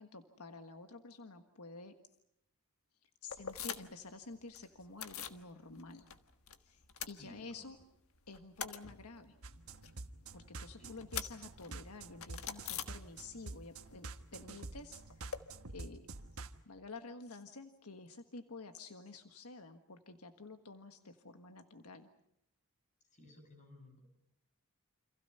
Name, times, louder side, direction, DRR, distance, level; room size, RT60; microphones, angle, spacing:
voice 1, 0.0-1.9 3.0-6.1 6.6-7.8 8.3-9.4 10.3-15.2 15.7-16.1 16.6-22.1, left 3 dB, 85° left, 7 dB, 1.5 m, -50 dB
sound 1, 3.3-4.1 4.3-5.4 5.8-6.6 6.8-7.8 8.1-13.5 13.8-15.4, left 8 dB, 70° left, 1.5 m, -45 dB
voice 2, 7.2-7.7 10.8-11.0 23.1-24.3, left 1 dB, 35° left, 5 dB, 7.7 m, -58 dB
sound 2, 9.4-16.6, right 3 dB, 70° right, 1.3 m, -48 dB
29.0 x 27.0 x 5.6 m, 0.77 s
head